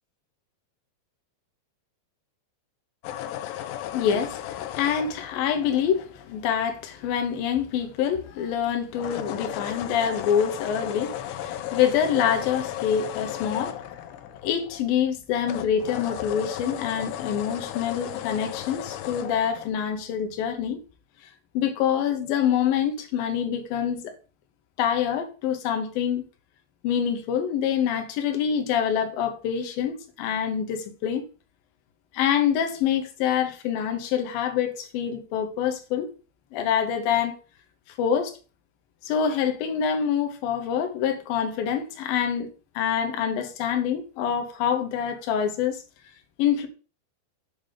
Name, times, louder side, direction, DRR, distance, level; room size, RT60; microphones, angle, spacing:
sound 1, 3.0-6.5 8.9-15.1 15.4-19.7, left 11 dB, 85° left, 2.8 m, -35 dB
voice 1, 3.8-14.0 14.4-20.8 21.5-24.1 24.8-26.2 26.8-31.2 32.1-36.1 36.5-37.4 38.0-38.3 39.0-42.5 42.8-45.8 46.4-46.7, left 8 dB, 65° left, 2.6 m, -26 dB
7.7 x 3.7 x 6.6 m
omnidirectional pair, 5.0 m